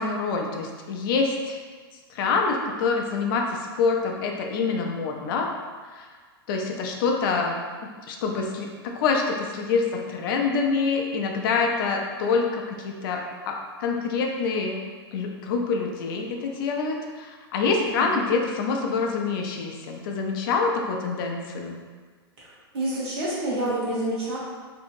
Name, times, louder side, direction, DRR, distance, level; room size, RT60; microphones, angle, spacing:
voice 1, 0.0-1.6 2.1-3.4 3.8-5.5 5.9-6.1 6.5-7.6 8.1-8.7 8.9-14.8 15.1-21.8, left 4 dB, 60° left, 2 dB, 0.5 m, -26 dB
voice 2, 17.8-18.2 22.4-22.5 22.7-24.4, right 1 dB, 70° right, -7 dB, 1.3 m, -28 dB
2.8 x 2.6 x 2.5 m, 1.5 s
hypercardioid pair, 115°, 13 cm